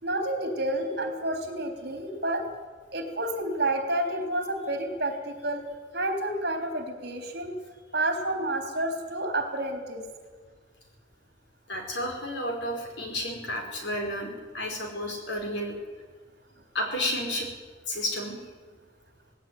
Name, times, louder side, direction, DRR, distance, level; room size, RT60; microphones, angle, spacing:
voice 1, 0.0-2.4 2.9-5.6 5.9-7.6 7.9-10.0, right 1 dB, 55° right, 4 dB, 3.8 m, -29 dB
voice 2, 11.7-15.7 16.7-17.5 17.9-18.4, left 1 dB, 60° left, 2 dB, 5.2 m, -31 dB
18.5 x 17.0 x 9.6 m, 1.5 s
head